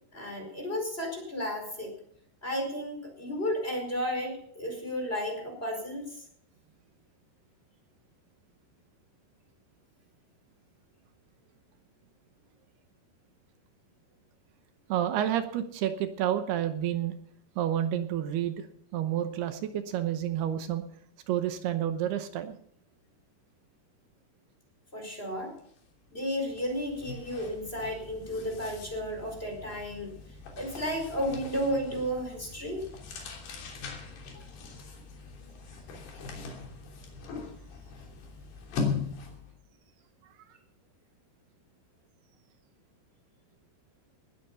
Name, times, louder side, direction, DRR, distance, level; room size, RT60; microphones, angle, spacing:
voice 1, 0.1-1.9 2.4-6.0 24.9-25.5 26.1-30.1 30.6-32.8 34.3-34.4, equal, 15° left, 2 dB, 4.8 m, -33 dB
voice 2, 14.9-17.1 17.6-18.7 18.9-20.8 21.3-22.6, right 11 dB, 80° right, 9 dB, 2.9 m, -29 dB
sound 1, 25.6-25.8 26.1-39.5, left 4 dB, 85° left, 5.3 m, -40 dB
19.5 x 10.5 x 5.5 m, 0.65 s
omnidirectional pair, 4.7 m